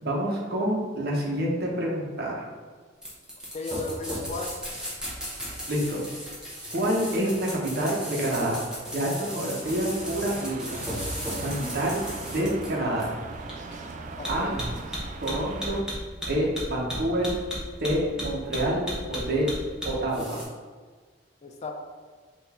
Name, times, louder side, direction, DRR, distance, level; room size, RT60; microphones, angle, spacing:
voice 1, 0.0-2.5 5.7-6.0 6.7-8.6 8.9-10.8 11.4-13.1 14.3-14.5 15.2-15.8 16.3-17.3 17.8-19.5 19.8-20.4, right 1 dB, 60° right, -3 dB, 1.0 m, -27 dB
sound 1, 3.0-20.4, equal, 5° right, 1.0 m, -35 dB
voice 2, 3.5-4.5 14.2-14.6 21.4-21.7, left 3 dB, 40° left, 3 dB, 0.4 m, -35 dB
sound 2, 9.6-15.8, right 3 dB, 40° right, 0.3 m, -39 dB
3.9 x 2.6 x 4.2 m, 1.5 s
head